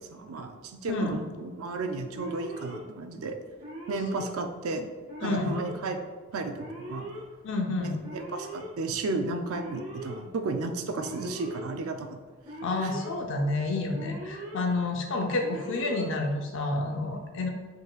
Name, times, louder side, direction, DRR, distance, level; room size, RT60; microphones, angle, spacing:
voice 1, 0.0-3.4 3.9-4.9 5.2-6.0 6.3-7.0 7.8-12.2 12.8-12.9, right 3 dB, 75° right, 7 dB, 0.4 m, -33 dB
Alarm, 2.1-2.8 3.6-4.3 5.1-5.7 6.5-7.2 8.0-8.7 9.5-10.2 11.0-11.6 12.4-13.1 13.9-14.6 15.4-16.1, right 1 dB, 35° right, 1.4 m, -40 dB
voice 2, 5.2-5.6 7.4-7.9 12.6-17.5, left 2 dB, 60° left, 3 dB, 0.6 m, -29 dB
5.3 x 3.8 x 2.4 m, 1.4 s
head